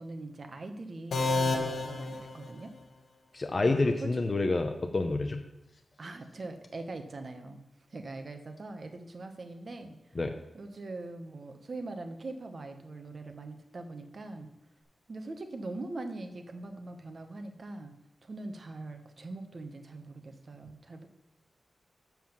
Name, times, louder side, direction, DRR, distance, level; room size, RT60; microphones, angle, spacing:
voice 1, 0.0-2.7 3.7-4.2 6.0-7.6 7.9-10.0 10.5-14.5 15.1-17.9 18.2-21.1, right 2 dB, 40° right, 6 dB, 1.0 m, -42 dB
sound 1, 1.1-3.0, left 3 dB, 85° left, 1.3 m, -31 dB
voice 2, 3.3-5.4 10.2-10.3, left 2 dB, 35° left, 5 dB, 0.6 m, -28 dB
7.2 x 5.9 x 7.2 m, 0.90 s
wide cardioid pair, 145°, 0 cm